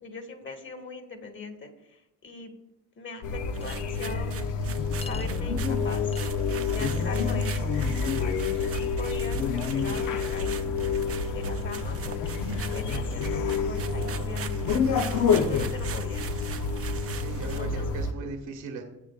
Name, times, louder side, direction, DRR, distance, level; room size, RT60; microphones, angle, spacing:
voice 1, 0.0-2.5 2.9-4.3 5.0-6.1 6.7-10.9 11.3-14.8 15.4-16.3 17.4-17.8, left 3 dB, 40° left, 3 dB, 1.8 m, -41 dB
sound 1, 3.2-18.1, left 5 dB, 90° left, 0.9 m, -28 dB
sound 2, 3.5-17.7, right 8 dB, 50° right, 0.7 m, -43 dB
Chink clink, 3.6-3.8 5.0-5.3 6.1-6.3, left 5 dB, 20° left, 0.5 m, -43 dB
voice 2, 11.3-12.1 17.0-18.8, right 3 dB, 90° right, 3 dB, 1.7 m, -39 dB
17.0 x 7.7 x 2.5 m, 0.86 s
cardioid pair, 90°, 30 cm